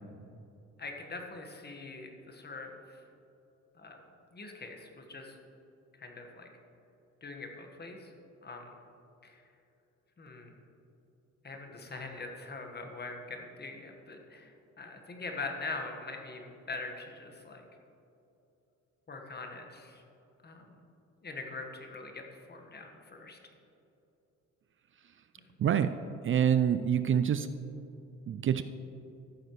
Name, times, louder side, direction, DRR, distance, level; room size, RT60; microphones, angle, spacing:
voice 1, 0.8-3.0 3.8-4.0 4.3-5.4 6.0-6.5 7.2-8.1 8.4-8.7 9.2-9.4 10.2-10.5 11.4-14.5 14.8-17.6 19.1-20.0 20.4-20.7 21.2-23.4, left 3 dB, 35° left, 3 dB, 1.5 m, -43 dB
voice 2, 25.6-25.9 26.2-27.5 28.3-28.6, right 9 dB, 45° right, 11 dB, 0.4 m, -26 dB
14.0 x 7.8 x 3.1 m, 2.9 s
cardioid pair, 90°, 30 cm